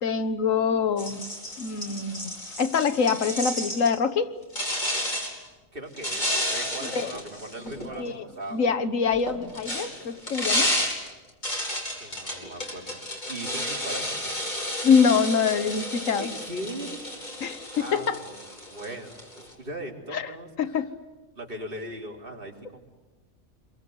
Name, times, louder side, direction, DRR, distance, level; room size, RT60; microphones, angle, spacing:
voice 1, 0.0-1.3 1.6-2.3 2.6-4.3 6.9-7.1 7.9-8.2 8.5-10.9 14.8-16.3 17.4-18.2 20.1-20.3 20.6-20.9, left 6 dB, 75° left, 11 dB, 1.5 m, -24 dB
sound 1, 1.0-4.0 4.5-5.4 6.0-8.1 9.1-19.5, left 1 dB, 35° left, 5.2 m, -31 dB
voice 2, 5.7-8.9 12.0-14.3 16.2-17.0 17.7-20.8 21.4-22.8, right 1 dB, 40° right, 0 dB, 4.0 m, -39 dB
28.0 x 23.0 x 8.0 m, 1.2 s
omnidirectional pair, 1.4 m